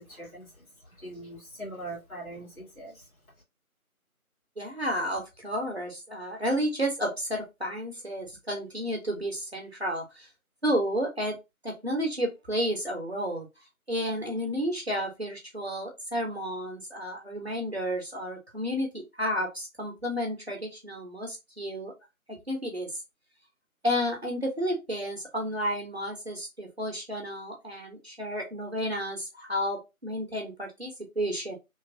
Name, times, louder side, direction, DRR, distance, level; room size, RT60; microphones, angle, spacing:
voice 1, 0.0-3.1, right 1 dB, 70° left, 1.7 m, -42 dB
voice 2, 4.6-10.3 10.6-11.4 11.6-13.5 13.9-21.9 22.3-22.9 23.8-31.5, equal, 45° right, 0.9 m, -31 dB
3.1 x 2.1 x 2.6 m
figure-of-eight pair, 170°, 43 cm